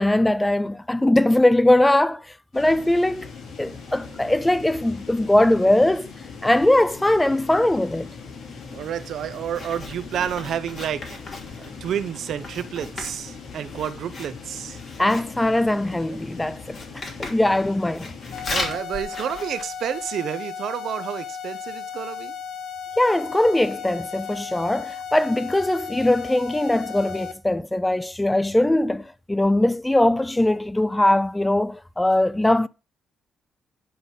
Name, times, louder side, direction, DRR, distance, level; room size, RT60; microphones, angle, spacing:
voice 1, 0.0-2.3 2.5-3.3 3.6-6.1 6.4-8.1 15.0-16.8 17.2-18.1 23.0-32.7, left 1 dB, 10° left, 0.4 m, -20 dB
sound 1, 2.5-18.8, left 5 dB, 55° left, 2.9 m, -40 dB
Writing, 8.6-20.2, left 3 dB, 40° left, 2.9 m, -38 dB
voice 2, 8.7-11.2 11.6-14.8 16.1-16.2 18.5-22.3, right 9 dB, 70° right, 0.7 m, -30 dB
sound 2, 18.3-27.3, left 7 dB, 80° left, 0.8 m, -35 dB
10.0 x 3.9 x 5.2 m
cardioid pair, 90°, 0 cm